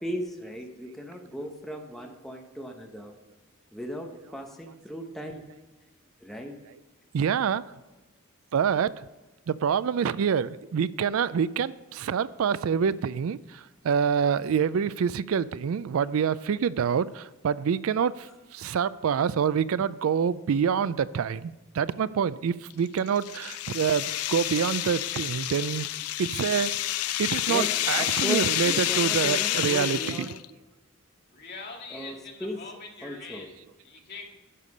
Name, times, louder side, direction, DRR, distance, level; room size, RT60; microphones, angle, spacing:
voice 1, 0.0-3.1 3.7-4.1 4.3-5.4 6.2-6.6 27.5-27.7 28.0-30.4 31.9-32.6 33.0-33.5, equal, ahead, 1.0 m, -36 dB
voice 2, 7.1-7.6 8.5-9.1 9.5-25.9 26.2-26.7 27.2-30.4, right 7 dB, 70° right, 0.4 m, -26 dB
sound 1, 22.7-30.4, left 14 dB, 90° left, 0.4 m, -29 dB
voice 3, 31.3-34.2, left 4 dB, 45° left, 1.9 m, -43 dB
11.0 x 6.6 x 5.4 m
head